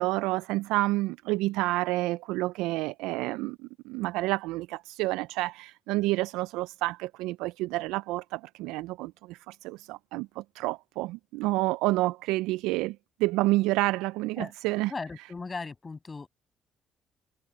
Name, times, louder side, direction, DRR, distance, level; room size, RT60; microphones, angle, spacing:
voice 1, 0.0-14.9, right 19 dB, 80° right, 0.5 m, -29 dB
voice 2, 14.9-16.3, left 4 dB, 35° left, 7.1 m, -37 dB
hypercardioid pair, 50°, 0 cm